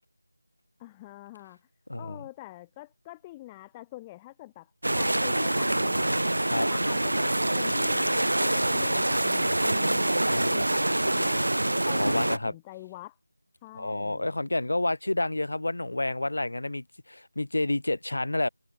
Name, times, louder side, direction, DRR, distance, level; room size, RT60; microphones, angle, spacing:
voice 1, 0.8-1.7 2.0-6.3 6.7-7.3 7.5-11.5 11.8-13.2 13.6-14.3, left 17 dB, 10° left, 1.2 m, -45 dB
voice 2, 1.9-2.2 6.5-6.7 10.3-10.5 11.9-12.5 13.7-18.5, left 2 dB, 65° left, 3.8 m, -29 dB
sound 1, 4.8-12.4, right 1 dB, 85° right, 0.4 m, -25 dB
figure-of-eight pair, 175°, 0 cm